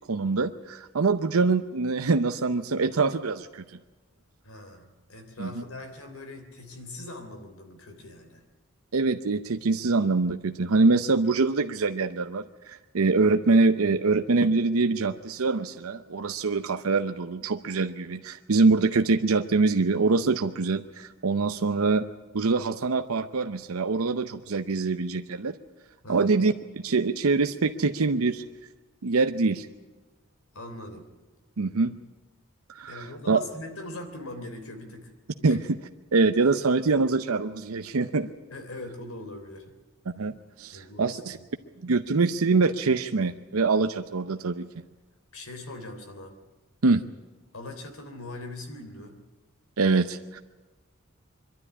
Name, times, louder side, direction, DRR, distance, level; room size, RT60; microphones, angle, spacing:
voice 1, 0.1-3.6 5.4-5.6 8.9-22.1 22.3-25.6 26.1-28.4 29.0-29.7 31.6-31.9 32.7-33.4 35.4-35.6 36.1-38.3 40.2-41.4 41.8-44.7 46.8-47.0 49.8-50.4, right 3 dB, 80° right, 8 dB, 0.7 m, -24 dB
voice 2, 4.4-8.4 26.0-26.4 30.5-31.1 32.9-35.1 35.4-35.6 38.5-39.7 40.7-41.5 45.3-46.3 47.5-49.2, left 2 dB, 75° left, 7 dB, 3.3 m, -41 dB
23.0 x 12.5 x 9.7 m, 1.3 s
head